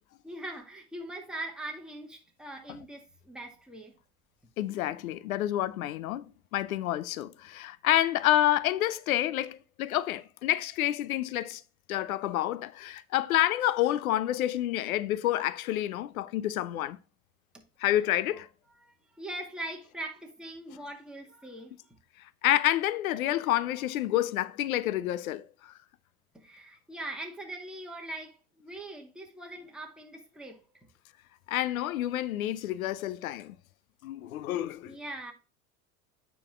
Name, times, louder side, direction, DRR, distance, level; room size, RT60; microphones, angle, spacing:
voice 1, 0.2-4.0 18.1-18.2 18.8-22.0 26.3-30.6 34.8-35.3, right 1 dB, ahead, 2.0 m, -41 dB
voice 2, 4.6-6.2 6.5-11.6 11.9-17.0 17.8-18.5 22.4-25.7 31.5-33.5 34.0-35.0, left 14 dB, 85° left, 0.7 m, -28 dB
9.1 x 4.0 x 3.6 m
hypercardioid pair, 85°, 41 cm